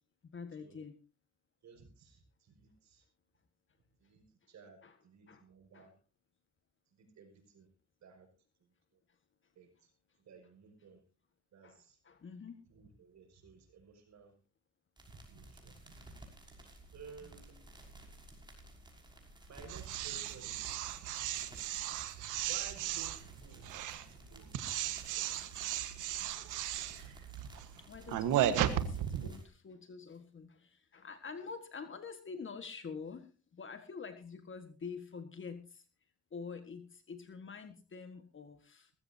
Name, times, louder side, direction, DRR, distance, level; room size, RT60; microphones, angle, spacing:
voice 1, 0.2-0.9 4.8-5.0 5.3-5.4 5.7-5.9 11.6-12.6 27.8-35.8 36.3-38.9, left 5 dB, 40° left, 8 dB, 1.7 m, -47 dB
voice 2, 1.6-3.0 4.0-5.9 6.9-7.7 8.0-8.3 9.6-9.9 10.2-11.0 11.5-12.0 12.7-14.3 15.2-16.2 16.9-17.7 19.5-20.9 22.5-25.5, right 5 dB, 65° right, 5 dB, 6.1 m, -56 dB
sound 1, 15.0-29.5, right 1 dB, 15° right, 5.9 m, -56 dB
sound 2, 19.7-29.3, right 11 dB, 90° right, 1.5 m, -35 dB
20.0 x 15.0 x 2.8 m, 0.33 s
cardioid pair, 90°, 30 cm